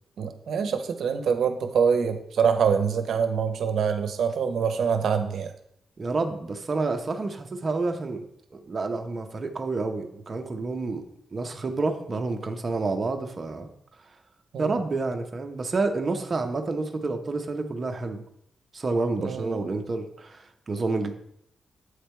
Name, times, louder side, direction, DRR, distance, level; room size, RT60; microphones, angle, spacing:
voice 1, 0.2-5.5 14.5-14.7 19.2-19.6, right 6 dB, 80° right, 7 dB, 0.7 m, -25 dB
voice 2, 6.0-11.1 11.3-13.7 14.0-14.2 14.6-18.2 18.7-21.1, right 3 dB, 35° right, 5 dB, 0.7 m, -29 dB
8.1 x 3.3 x 4.4 m, 0.73 s
wide cardioid pair, 130°, 0 cm